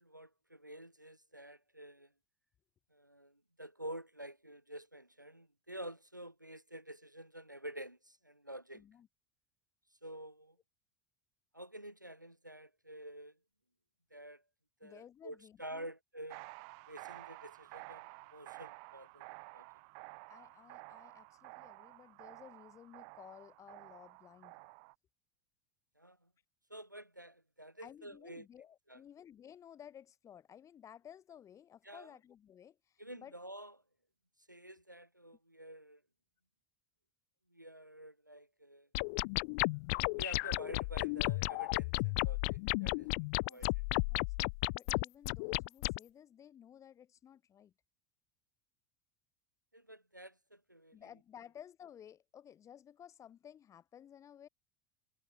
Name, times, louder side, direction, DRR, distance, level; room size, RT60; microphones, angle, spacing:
voice 1, 0.0-2.1 2.9-8.8 10.0-10.6 11.5-13.3 14.1-14.4 14.8-16.5 16.9-19.2 19.5-19.7 26.0-26.3 26.7-28.5 28.9-29.0 31.8-32.1 33.0-33.7 34.5-36.0 37.5-38.9 39.9-43.1 43.4-43.7 49.7-51.0, right 1 dB, 90° right, 5.0 m, -49 dB
voice 2, 8.7-9.1 14.8-15.9 20.3-24.6 27.8-33.4 43.4-43.7 44.1-44.3 44.7-47.7 50.9-54.5, left 9 dB, 30° left, 4.5 m, -56 dB
sound 1, 16.3-24.9, right 40 dB or more, 55° right, 7.7 m, -52 dB
sound 2, 38.9-46.0, left 30 dB, 50° left, 0.4 m, -34 dB
figure-of-eight pair, 75°, 10 cm